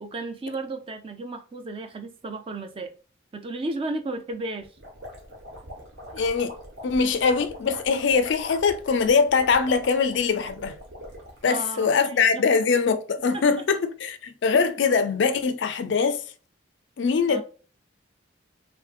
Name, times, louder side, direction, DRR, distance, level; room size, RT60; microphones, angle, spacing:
voice 1, 0.0-2.9 3.3-4.7 11.5-12.4 13.3-13.4 14.5-14.6 17.3-17.4, right 2 dB, 30° right, 0.4 m, -34 dB
sound 1, 4.6-11.4, equal, 65° right, 1.1 m, -42 dB
voice 2, 6.1-6.5 6.8-10.8 11.4-16.2 17.0-17.4, left 5 dB, 65° left, 0.4 m, -22 dB
3.1 x 2.6 x 2.4 m
head